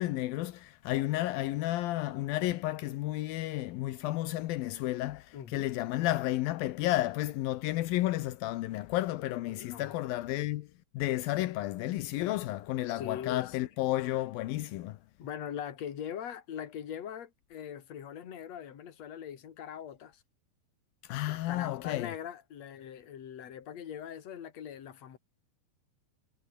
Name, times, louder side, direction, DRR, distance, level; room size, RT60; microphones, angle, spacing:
voice 1, 0.0-10.7 10.9-15.0 21.0-22.1, left 16 dB, 85° left, 2.0 m, -32 dB
voice 2, 5.3-5.7 9.5-10.0 12.8-13.7 15.2-20.2 21.3-25.2, left 9 dB, 45° left, 2.7 m, -41 dB
omnidirectional pair, 5.4 m